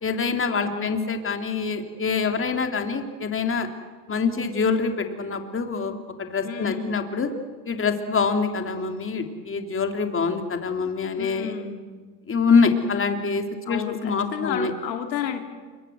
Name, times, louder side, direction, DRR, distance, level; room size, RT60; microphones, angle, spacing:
voice 1, 0.0-3.7 4.1-7.3 7.6-11.5 12.3-14.7, left 5 dB, 25° left, 6 dB, 3.3 m, -25 dB
voice 2, 6.4-7.1 11.1-11.8 13.7-15.4, left 9 dB, 90° left, 6 dB, 2.6 m, -31 dB
27.0 x 24.0 x 8.0 m, 1.5 s
hypercardioid pair, 90°, 50 cm